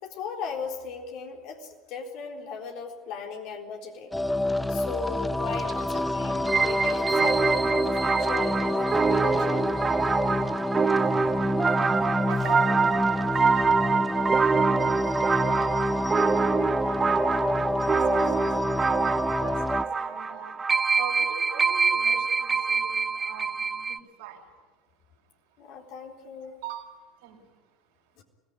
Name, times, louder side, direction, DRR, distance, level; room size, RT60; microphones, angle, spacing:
voice 1, 0.0-4.2 4.7-9.6 25.6-26.6 28.2-28.3, left 6 dB, 55° left, 2 dB, 4.0 m, -37 dB
sound 1, 4.1-19.8, left 1 dB, 5° left, 0.7 m, -28 dB
sound 2, 6.5-24.0, right 5 dB, 25° right, 1.0 m, -25 dB
voice 2, 12.2-17.3 17.9-20.6 21.0-24.4 26.6-26.9 27.2-27.4, right 7 dB, 65° right, 2 dB, 4.9 m, -43 dB
25.0 x 18.5 x 9.8 m, 1.3 s
figure-of-eight pair, 70°, 0 cm